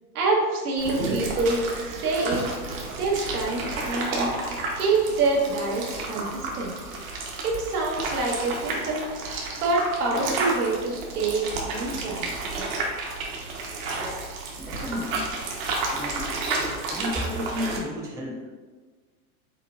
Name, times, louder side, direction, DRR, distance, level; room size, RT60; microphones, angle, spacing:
voice 1, 0.1-1.6 1.9-2.4 2.9-6.7 7.4-9.0 9.6-12.2, right 3 dB, 80° right, -2 dB, 1.4 m, -26 dB
sound 1, 0.8-17.8, right 3 dB, 65° right, 1.2 m, -31 dB
voice 2, 13.9-14.2 14.6-15.3 15.9-16.3 16.9-18.4, left 1 dB, 5° right, -3 dB, 0.4 m, -33 dB
5.5 x 3.6 x 2.6 m, 1.4 s
supercardioid pair, 125°, 45 cm